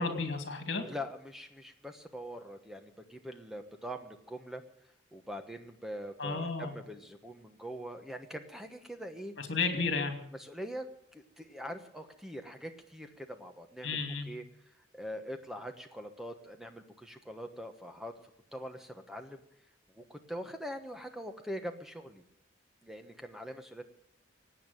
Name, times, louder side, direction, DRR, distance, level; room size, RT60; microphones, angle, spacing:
voice 1, 0.0-0.8 6.2-6.7 9.4-10.2 13.8-14.3, left 4 dB, 60° left, 6 dB, 2.8 m, -32 dB
voice 2, 0.8-4.6 5.1-9.3 10.3-14.4 14.9-18.1 18.5-19.4 19.9-22.2 22.8-23.8, equal, ahead, 6 dB, 1.1 m, -43 dB
17.5 x 8.9 x 8.9 m, 0.73 s
head